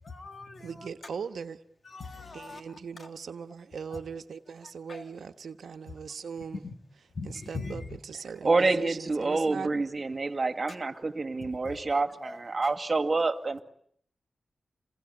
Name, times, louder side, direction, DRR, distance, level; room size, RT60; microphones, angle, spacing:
voice 1, 0.0-0.9 1.8-2.6 3.0-3.1 3.9-4.0 4.9-5.1 5.9-6.0 6.5-6.7 7.1-8.0 11.4-11.8 12.2-12.8, left 3 dB, 55° left, 3.2 m, -41 dB
voice 2, 0.6-1.6 2.3-6.6 7.5-9.7, right 6 dB, 85° right, 1.2 m, -39 dB
voice 3, 8.4-13.6, right 3 dB, 40° right, 2.1 m, -27 dB
28.0 x 21.5 x 9.9 m
wide cardioid pair, 80°, 0 cm